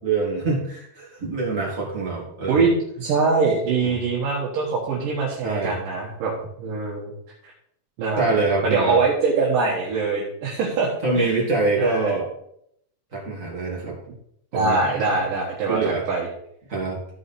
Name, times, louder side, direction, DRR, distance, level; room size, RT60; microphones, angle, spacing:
voice 1, 0.0-2.6 3.8-4.0 5.4-5.8 8.2-9.0 11.0-12.3 13.1-14.0 14.5-15.0 15.7-16.0 16.7-17.0, right 3 dB, 25° right, -3 dB, 2.1 m, -25 dB
voice 2, 3.0-6.3 6.6-7.1 7.4-7.5 8.0-11.4 11.8-12.1 14.5-16.3, right 4 dB, 70° right, -4 dB, 3.0 m, -23 dB
14.5 x 4.9 x 4.2 m, 0.72 s
omnidirectional pair, 4.2 m